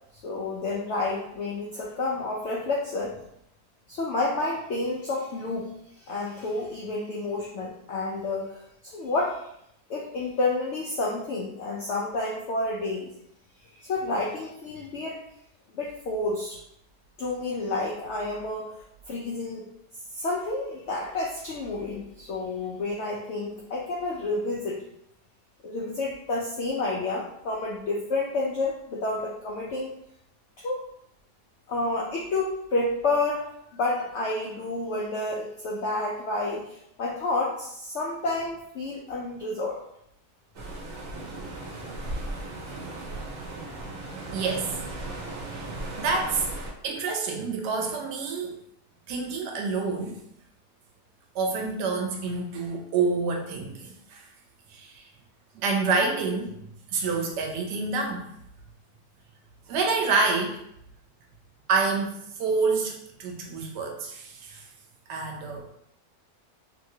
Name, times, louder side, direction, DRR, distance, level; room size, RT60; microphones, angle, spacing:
voice 1, 0.2-3.2 3.9-5.7 6.0-9.4 9.9-13.1 13.8-15.2 15.7-16.6 17.2-18.7 19.1-19.7 20.1-24.8 25.6-29.9 30.6-30.8 31.7-39.8, left 2 dB, 80° left, -3 dB, 0.6 m, -30 dB
sound 1, 40.5-46.7, right 2 dB, 60° right, 1.0 m, -36 dB
voice 2, 44.3-44.7 45.5-45.6 46.0-46.5 46.8-48.6 49.1-50.1 51.3-54.2 54.7-55.1 55.5-56.5 56.9-58.2 59.7-60.6 61.7-62.9 63.2-64.6 65.1-65.7, right 4 dB, 85° right, 2 dB, 1.2 m, -27 dB
2.9 x 2.8 x 2.7 m, 0.75 s
omnidirectional pair, 1.8 m